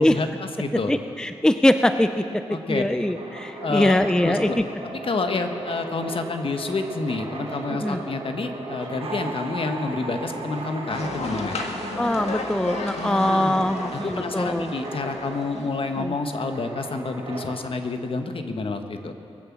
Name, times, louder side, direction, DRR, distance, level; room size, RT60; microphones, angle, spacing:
voice 1, 0.0-0.9 2.5-2.8 3.6-4.6 5.0-11.6 13.0-13.6 13.9-19.1, left 3 dB, 55° left, 6 dB, 1.3 m, -28 dB
voice 2, 0.9-2.2 2.7-4.6 7.7-8.0 12.0-14.7 16.0-16.1, left 1 dB, 5° left, 9 dB, 0.6 m, -22 dB
sound 1, 3.0-17.6, right 2 dB, 80° right, 4.5 m, -37 dB
sound 2, 9.0-14.8 15.1-15.6, right 2 dB, 55° right, 1.6 m, -39 dB
sound 3, 10.9-16.0, left 3 dB, 75° left, 1.7 m, -34 dB
23.0 x 7.7 x 7.4 m, 2.6 s
cardioid pair, 60°, 11 cm